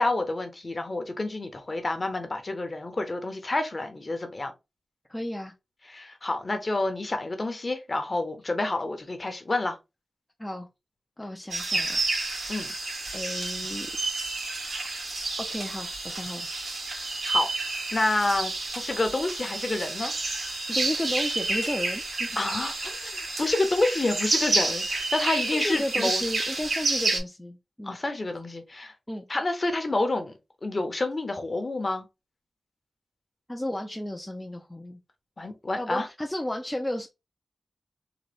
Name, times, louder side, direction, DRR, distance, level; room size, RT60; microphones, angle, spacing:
voice 1, 0.0-4.5 5.9-9.8 12.5-12.7 17.3-17.5 17.9-20.1 22.4-26.2 27.8-28.9 29.3-30.3 30.6-32.1 35.4-36.1, left 2 dB, 35° left, 0.8 m, -28 dB
voice 2, 5.1-5.5 10.4-10.7 11.2-12.0 13.1-13.9 15.5-16.5 20.7-22.4 23.9-24.0 25.4-28.0 29.1-29.2 33.5-35.0 35.8-37.1, left 1 dB, 10° left, 0.5 m, -33 dB
sound 1, 11.5-27.2, right 2 dB, 80° right, 2.1 m, -30 dB
3.8 x 2.2 x 3.3 m
wide cardioid pair, 120°, 0 cm